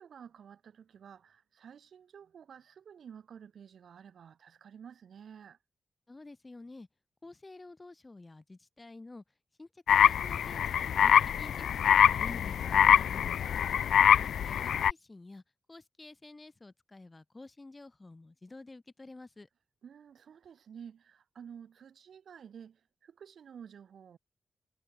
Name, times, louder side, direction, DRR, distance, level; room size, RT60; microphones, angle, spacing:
voice 1, 0.0-5.6 13.1-13.9 19.8-24.2, right 7 dB, 75° right, 7.1 m, -51 dB
voice 2, 6.1-6.9 7.2-9.2 9.6-11.1 11.4-13.0 14.4-15.4 15.7-19.5, left 2 dB, 25° left, 2.2 m, -50 dB
sound 1, 9.9-14.9, left 9 dB, 90° left, 0.4 m, -24 dB
cardioid pair, 80°, 0 cm